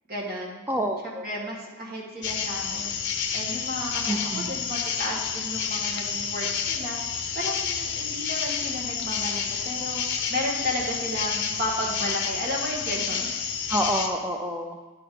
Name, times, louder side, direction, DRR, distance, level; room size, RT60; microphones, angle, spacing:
voice 1, 0.1-0.6 1.0-2.9 3.3-7.0 7.3-10.0 10.3-13.3, left 1 dB, 45° right, -2 dB, 1.7 m, -33 dB
voice 2, 0.7-1.2 4.1-4.6 13.7-14.8, equal, 10° right, 1 dB, 0.3 m, -28 dB
sound 1, 2.2-14.1, left 6 dB, 55° left, 0.7 m, -29 dB
11.0 x 3.8 x 5.0 m, 1.2 s
head